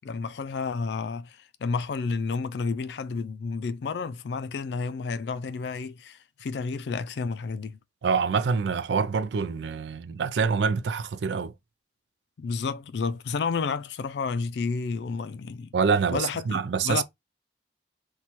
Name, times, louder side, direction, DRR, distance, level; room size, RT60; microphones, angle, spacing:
voice 1, 0.0-7.8 12.4-15.7 16.1-16.6 16.8-17.0, left 4 dB, 75° left, 0.4 m, -31 dB
voice 2, 8.0-11.5 15.7-17.0, right 5 dB, 85° right, 0.4 m, -26 dB
2.9 x 2.2 x 4.1 m
head